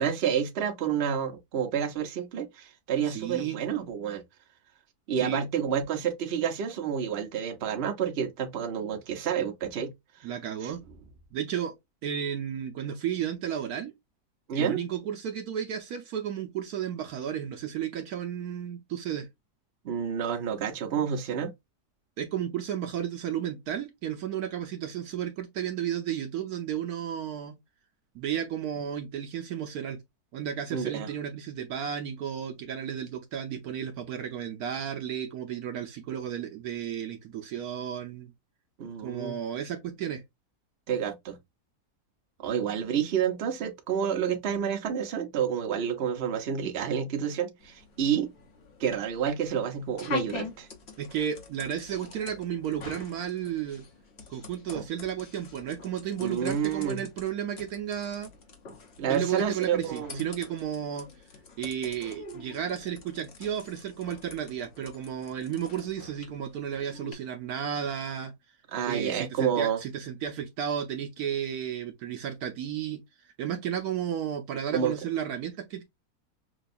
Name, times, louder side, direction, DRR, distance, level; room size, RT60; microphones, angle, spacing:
voice 1, 0.0-4.2 5.1-9.9 10.6-10.7 14.5-14.8 19.8-21.5 30.7-31.1 38.8-39.4 40.9-41.4 42.4-48.3 48.8-50.7 54.7-54.8 56.2-57.0 59.0-60.2 68.7-69.8 74.7-74.9, right 8 dB, 50° right, 0.9 m, -29 dB
voice 2, 3.1-3.6 5.2-5.5 10.2-10.8 11.3-11.7 12.0-13.9 14.5-19.3 22.2-27.6 28.1-30.0 30.3-38.3 39.0-40.2 51.0-53.8 54.3-58.3 59.1-61.1 61.6-68.3 68.8-73.0 73.4-75.8, right 9 dB, 70° right, 1.1 m, -33 dB
sound 1, 47.6-67.1, left 5 dB, 45° left, 1.0 m, -45 dB
5.9 x 2.3 x 2.5 m
omnidirectional pair, 1.8 m